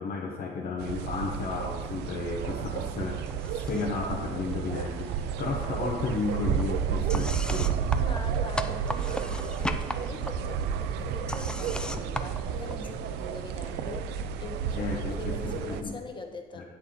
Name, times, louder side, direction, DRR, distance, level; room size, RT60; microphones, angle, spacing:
voice 1, 0.0-3.2 3.5-7.8 14.7-16.0 16.6-16.7, left 4 dB, 55° left, -2 dB, 1.0 m, -33 dB
sound 1, 0.8-15.8, right 8 dB, 85° right, 0.5 m, -31 dB
sound 2, 3.3-4.1 4.3-5.3 5.6-13.2, left 1 dB, 5° left, 0.4 m, -38 dB
voice 2, 7.9-16.6, left 3 dB, 30° left, 4 dB, 1.1 m, -42 dB
8.5 x 7.5 x 3.8 m, 1.4 s
cardioid pair, 110°, 17 cm